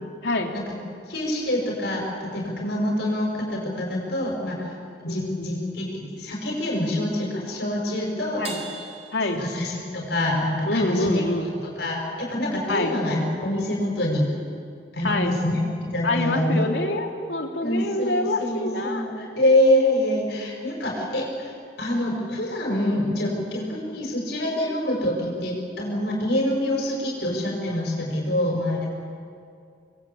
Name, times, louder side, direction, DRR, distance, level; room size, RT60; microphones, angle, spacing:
voice 1, 0.2-0.5 5.1-5.5 8.4-8.6 9.1-9.5 10.7-11.5 12.7-12.9 15.0-15.3 16.0-19.1, left 2 dB, 90° left, 2 dB, 3.1 m, -26 dB
voice 2, 1.1-4.7 5.0-8.4 9.3-11.2 11.8-14.3 14.9-15.6 15.9-16.6 17.6-21.5 21.8-28.9, left 1 dB, 70° left, -2 dB, 6.4 m, -25 dB
Crash cymbal, 8.4-10.2, right 4 dB, 35° right, 4.4 m, -40 dB
29.0 x 21.5 x 8.6 m, 2.4 s
head